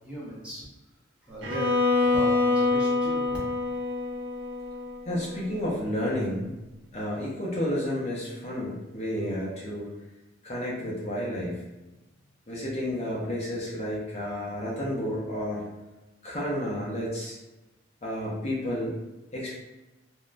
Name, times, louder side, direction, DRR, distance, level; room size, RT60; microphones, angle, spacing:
voice 1, 0.0-0.7 1.2-3.4, equal, 5° right, -7 dB, 0.7 m, -38 dB
Bowed string instrument, 1.4-5.4, left 3 dB, 75° right, 0.6 m, -26 dB
voice 2, 5.1-6.5 6.9-9.9 10.4-11.6 12.5-15.7 16.2-17.4 18.0-18.9 19.3-19.6, equal, 35° left, -5 dB, 0.6 m, -31 dB
3.5 x 2.1 x 2.5 m, 1.0 s
head